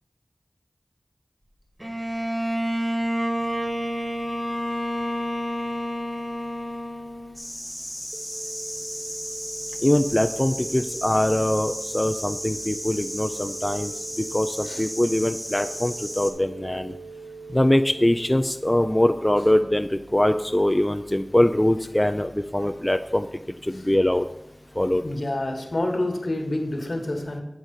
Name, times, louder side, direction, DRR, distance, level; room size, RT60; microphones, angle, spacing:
Bowed string instrument, 1.8-7.6, equal, 25° right, 2.0 m, -28 dB
sound 1, 7.3-16.3, equal, ahead, 1.4 m, -34 dB
sound 2, 8.1-18.1, right 4 dB, 85° right, 0.8 m, -42 dB
voice 1, 9.8-13.9 14.3-16.9 17.5-23.3 23.9-24.2 24.8-25.0, left 1 dB, 20° left, 7 dB, 0.4 m, -22 dB
voice 2, 25.0-27.4, left 1 dB, 70° left, 3 dB, 1.4 m, -28 dB
8.8 x 3.9 x 6.4 m, 0.92 s
wide cardioid pair, 45°, 0 cm